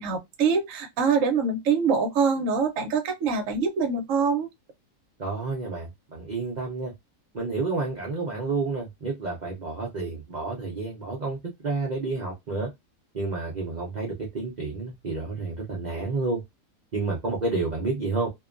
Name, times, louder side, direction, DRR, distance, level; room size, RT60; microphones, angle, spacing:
voice 1, 0.0-4.5, right 5 dB, 60° right, 0.9 m, -24 dB
voice 2, 5.2-6.9 7.3-11.4 11.6-12.7 13.1-16.4 16.9-18.3, right 3 dB, 90° right, 0.4 m, -30 dB
2.7 x 2.2 x 2.4 m
omnidirectional pair, 1.7 m